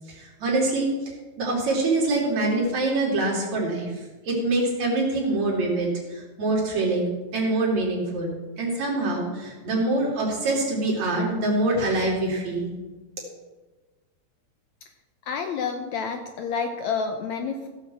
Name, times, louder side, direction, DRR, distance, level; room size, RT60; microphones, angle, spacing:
voice 1, 0.1-12.7, right 2 dB, 55° right, -2 dB, 3.8 m, -25 dB
voice 2, 15.2-17.7, left 5 dB, 75° left, 5 dB, 1.8 m, -29 dB
15.5 x 6.5 x 7.3 m, 1.3 s
omnidirectional pair, 3.8 m